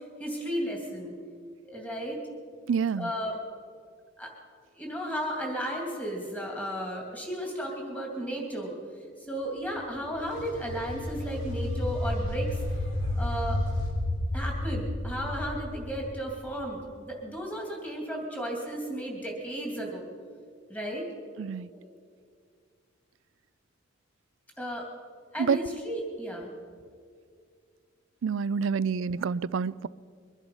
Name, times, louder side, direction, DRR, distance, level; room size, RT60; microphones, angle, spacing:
voice 1, 0.2-1.1 1.6-2.2 2.9-3.4 4.2-4.3 4.8-8.7 9.2-12.6 13.2-13.6 14.3-20.1 20.7-21.1 21.7-21.9 24.6-24.9 25.3-26.5, equal, 10° left, 0 dB, 2.7 m, -34 dB
voice 2, 2.7-3.1 21.4-21.7 25.4-25.6 28.2-29.9, right 6 dB, 75° right, 20 dB, 0.4 m, -27 dB
sound 1, 10.0-16.8, left 1 dB, 40° left, 1.1 m, -32 dB
sound 2, 10.3-13.9, left 1 dB, 70° left, 4.3 m, -48 dB
23.5 x 11.0 x 5.5 m, 2.2 s
head